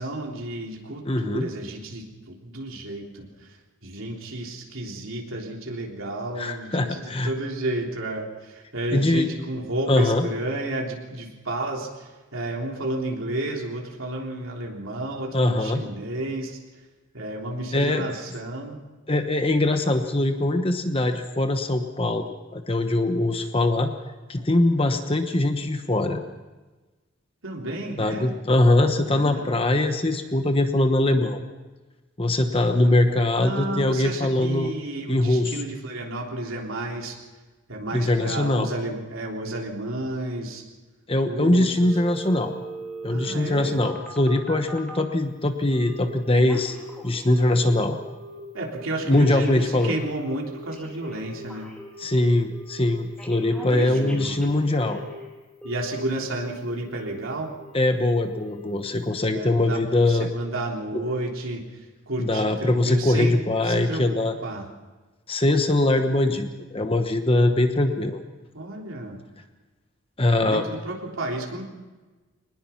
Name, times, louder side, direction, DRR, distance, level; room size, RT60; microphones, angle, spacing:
voice 1, 0.0-3.6 3.8-16.6 17.1-18.8 27.4-28.3 29.0-29.6 32.8-33.0 33.4-37.2 37.7-40.6 41.3-41.9 43.1-43.8 48.5-51.7 53.6-54.4 55.6-57.5 59.3-63.4 63.6-64.7 68.5-69.2 70.5-71.6, right 1 dB, 80° right, -1 dB, 3.5 m, -32 dB
voice 2, 1.0-1.5 6.4-7.3 8.9-9.3 9.9-10.3 15.3-15.8 17.7-18.0 19.1-22.3 22.5-23.9 24.3-26.2 28.0-31.4 32.2-34.7 35.1-35.6 37.9-38.7 41.1-42.5 43.0-46.8 47.0-48.0 49.1-50.0 52.0-55.0 57.7-60.3 62.2-64.3 65.3-68.2 70.2-70.6, left 1 dB, 25° left, 6 dB, 1.1 m, -22 dB
Telephone, 41.8-45.1 45.7-46.1 46.3-47.7 48.0-48.4 48.8-52.2 52.5-52.9 53.2-55.2 55.6-56.5 56.8-57.2 57.6-58.0 58.3-58.7 59.1-59.2, right 1 dB, 5° left, 3.0 m, -40 dB
22.5 x 20.0 x 5.8 m, 1.2 s
head